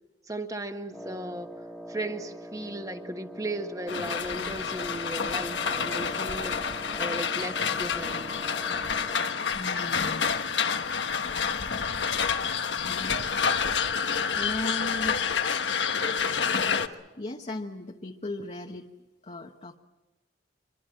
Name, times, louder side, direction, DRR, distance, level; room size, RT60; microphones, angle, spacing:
voice 1, 0.3-1.5 1.9-8.3, right 1 dB, 20° right, 7 dB, 1.4 m, -36 dB
Wind instrument woodwind instrument, 0.9-9.5, equal, ahead, 1.5 m, -43 dB
sound 1, 3.9-16.9, left 6 dB, 90° left, 1.2 m, -28 dB
voice 2, 9.5-10.3 12.9-13.2 14.3-15.6 17.2-18.9 19.2-19.8, left 2 dB, 40° left, 2 dB, 1.1 m, -37 dB
25.0 x 23.5 x 7.6 m, 1.1 s
head